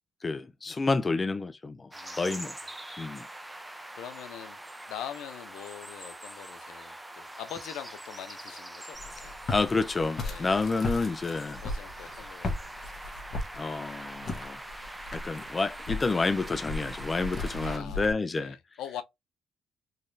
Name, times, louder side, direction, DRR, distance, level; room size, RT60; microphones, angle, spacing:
voice 1, 0.2-2.5 3.0-3.3 9.5-11.6 13.6-14.6 15.1-18.6, left 3 dB, 30° left, 0.4 m, -29 dB
voice 2, 1.9-2.3 3.9-4.6 4.9-9.4 10.2-10.5 11.5-12.6 17.6-18.1 18.4-19.0, left 10 dB, 90° left, 0.6 m, -43 dB
sound 1, 1.9-17.8, right 1 dB, 10° right, 0.7 m, -43 dB
Walk footsteps, 8.9-18.1, left 2 dB, 50° left, 1.3 m, -37 dB
3.9 x 3.1 x 2.6 m
cardioid pair, 90°, 0 cm